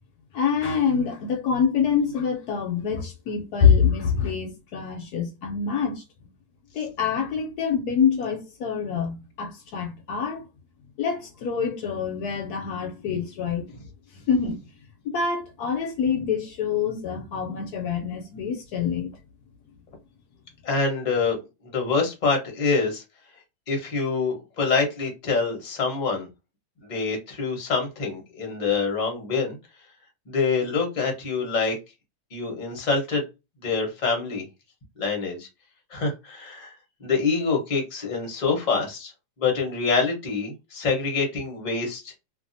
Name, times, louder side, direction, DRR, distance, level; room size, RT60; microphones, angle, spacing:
voice 1, 0.3-6.0 6.8-10.4 11.0-13.7 14.3-14.6 15.1-19.1, left 6 dB, 70° left, 1.0 m, -25 dB
voice 2, 20.6-21.4 21.6-23.0 23.7-26.3 26.9-29.6 30.3-31.8 32.3-33.3 33.6-34.4 35.0-35.5 35.9-36.7 37.0-39.1 39.4-42.1, left 4 dB, 35° left, 0.9 m, -25 dB
2.7 x 2.6 x 2.5 m
omnidirectional pair, 1.8 m